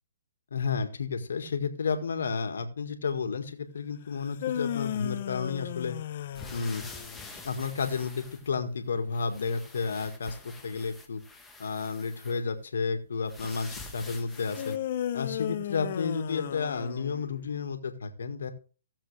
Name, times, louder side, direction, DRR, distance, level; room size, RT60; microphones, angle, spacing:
voice 1, 0.5-6.0 6.5-6.8 7.4-11.2 11.6-14.8 15.1-18.5, left 5 dB, 75° left, 6 dB, 1.7 m, -32 dB
sound 1, 4.2-7.4 14.5-17.5, left 11 dB, 45° left, 0.7 m, -35 dB
sound 2, 6.3-8.8 9.1-12.4 13.3-14.8, left 2 dB, 5° left, 1.1 m, -47 dB
16.0 x 7.3 x 3.3 m, 0.38 s
hypercardioid pair, 150°, 0 cm